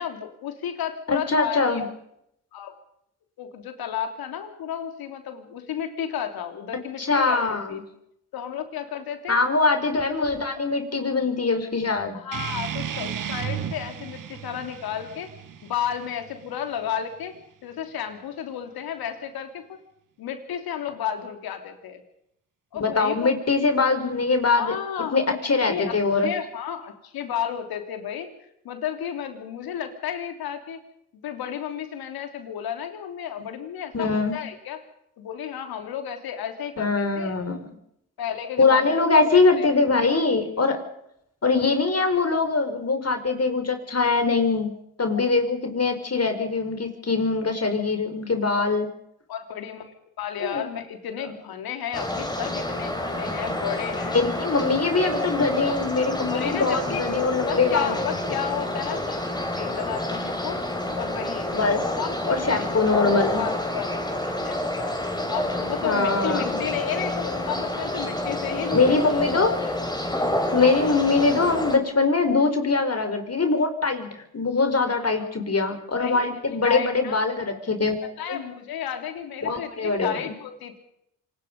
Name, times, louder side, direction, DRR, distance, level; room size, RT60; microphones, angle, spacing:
voice 1, 0.0-1.9 2.5-2.7 3.4-7.8 8.3-9.4 12.1-15.3 15.6-17.3 17.6-19.8 20.2-22.0 22.7-23.3 24.5-25.4 25.7-26.0 26.2-28.3 28.6-30.8 31.2-34.8 35.2-37.3 38.2-39.7 40.4-40.7 49.3-54.2 55.7-55.8 56.3-57.0 57.5-60.6 60.9-62.7 63.4-64.9 65.3-69.0 74.9-75.3 76.0-76.3 76.6-77.2 78.2-80.8, left 9 dB, 80° left, 6 dB, 3.3 m, -32 dB
voice 2, 1.1-1.9 7.0-7.7 9.3-12.2 22.8-24.7 25.1-26.3 33.9-34.4 36.8-37.6 38.6-40.8 41.4-48.9 50.4-50.6 54.1-58.0 61.5-61.8 62.3-63.4 65.8-66.6 68.7-69.7 70.5-74.1 74.3-78.4 79.4-80.2, left 3 dB, 45° left, 7 dB, 4.8 m, -22 dB
sound 1, 12.3-17.4, right 8 dB, 60° right, 1.8 m, -34 dB
sound 2, 51.9-71.8, left 1 dB, 10° left, 5.5 m, -28 dB
26.5 x 20.0 x 5.4 m, 0.76 s
supercardioid pair, 45°, 36 cm